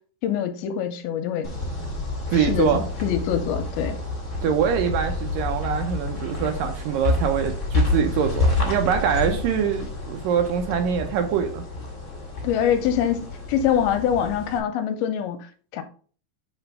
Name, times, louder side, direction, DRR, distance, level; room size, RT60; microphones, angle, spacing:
voice 1, 0.2-1.5 2.3-4.0 12.4-15.8, left 9 dB, 85° left, 2.6 m, -24 dB
sound 1, 1.4-14.6, left 2 dB, 25° left, 2.0 m, -28 dB
voice 2, 2.3-2.8 4.4-11.6, right 8 dB, 75° right, 2.1 m, -24 dB
6.1 x 4.4 x 5.4 m
omnidirectional pair, 4.4 m